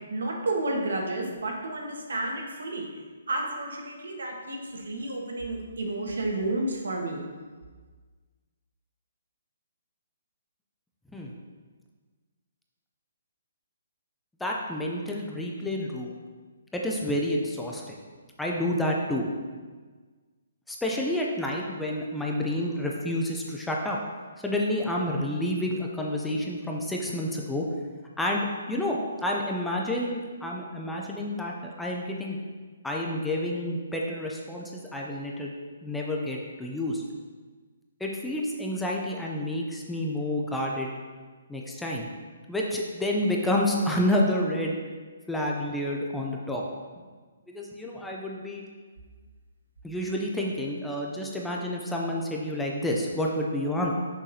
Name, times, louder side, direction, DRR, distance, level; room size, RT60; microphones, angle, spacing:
voice 1, 0.1-2.9 3.3-7.2, right 2 dB, 90° right, 1 dB, 1.2 m, -31 dB
voice 2, 14.4-16.1 16.7-18.0 18.4-19.3 20.7-24.0 24.4-27.7 28.2-32.4 32.8-35.5 35.8-37.0 38.0-40.9 41.5-42.1 42.5-44.8 45.3-46.6 47.5-48.6 49.8-53.9, left 1 dB, 5° left, -2 dB, 0.4 m, -29 dB
6.2 x 5.7 x 2.7 m, 1.4 s
hypercardioid pair, 175°, 0 cm